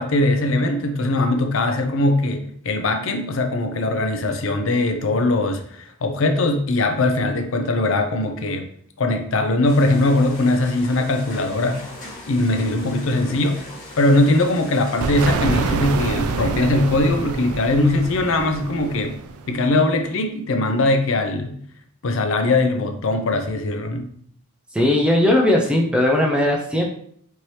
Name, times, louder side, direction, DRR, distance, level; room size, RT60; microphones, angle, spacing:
voice 1, 0.0-8.7 9.0-11.8 12.3-13.6 14.0-19.1 19.5-21.6 22.0-24.1, left 2 dB, 60° left, 6 dB, 0.5 m, -20 dB
sound 1, 9.6-15.2, left 1 dB, 35° left, 1.4 m, -39 dB
sound 2, 15.0-19.7, right 4 dB, 80° right, 0.4 m, -26 dB
voice 2, 24.7-26.8, left 1 dB, 5° right, 0 dB, 0.4 m, -18 dB
4.5 x 2.8 x 3.1 m, 0.63 s
head